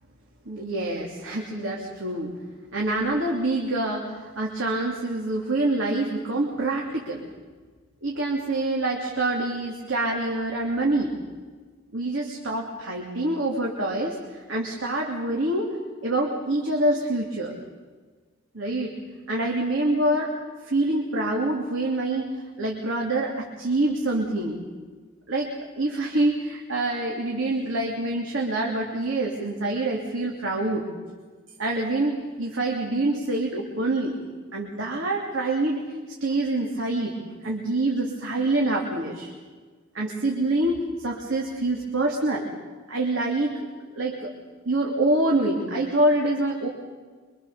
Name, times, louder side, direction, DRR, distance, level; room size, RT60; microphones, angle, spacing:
voice 1, 0.5-2.3 2.7-7.2 8.0-11.1 11.9-15.7 16.0-17.5 18.5-18.9 19.3-20.3 20.6-22.3 22.6-24.6 25.3-25.5 25.8-30.8 31.6-34.1 34.5-35.8 36.2-37.2 37.4-39.3 39.9-42.5 42.9-43.6 43.9-44.3 44.6-46.7, right 2 dB, 65° right, -1 dB, 3.0 m, -26 dB
25.5 x 25.0 x 7.0 m, 1.4 s
head